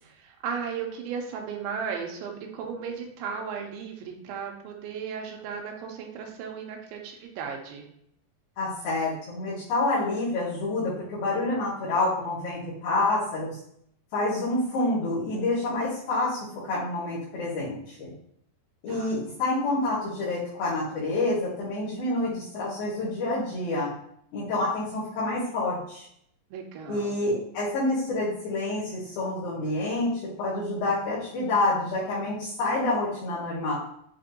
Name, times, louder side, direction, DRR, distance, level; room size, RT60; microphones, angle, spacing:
voice 1, 0.0-7.9 16.1-16.3 18.9-19.1 26.5-27.2, right 6 dB, 85° right, 1 dB, 2.4 m, -35 dB
voice 2, 8.6-13.6 14.1-16.4 16.6-18.1 18.8-23.9 24.3-26.1 26.9-33.7, left 2 dB, 80° left, -11 dB, 3.2 m, -28 dB
7.4 x 2.6 x 2.6 m, 0.70 s
omnidirectional pair, 4.3 m